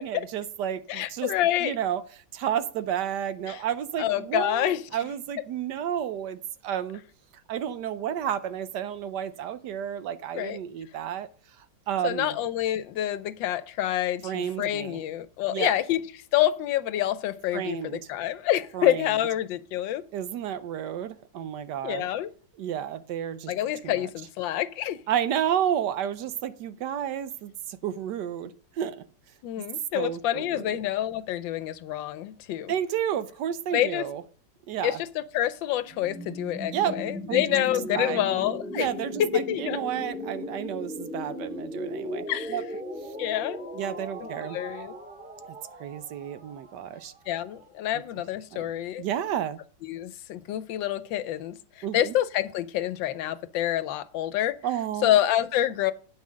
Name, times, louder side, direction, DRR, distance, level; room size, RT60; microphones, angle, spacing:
voice 1, 0.0-1.3 1.6-2.0 2.3-7.0 7.5-11.3 11.6-12.3 14.2-15.0 15.5-15.7 17.5-18.0 18.7-19.2 20.1-22.1 22.6-23.5 23.8-24.1 25.1-29.0 29.9-30.8 32.7-34.2 34.7-35.0 36.7-37.0 37.3-37.4 37.9-38.3 38.7-42.6 43.7-44.6 45.8-47.1 48.5-48.7 49.0-49.6 51.8-52.1 54.6-55.1, right 9 dB, 70° right, 1.2 m, -31 dB
voice 2, 0.9-1.7 3.5-3.6 4.0-4.8 10.3-10.6 12.0-16.0 16.3-20.0 21.8-22.3 23.5-25.0 29.4-32.7 33.7-34.0 34.8-38.9 39.2-39.8 42.3-42.5 43.2-43.6 44.5-45.0 47.3-49.0 49.8-54.6 55.0-55.9, left 12 dB, 80° left, 1.4 m, -27 dB
sound 1, 35.8-47.6, equal, 5° right, 1.7 m, -37 dB
9.1 x 5.7 x 6.2 m
omnidirectional pair, 2.0 m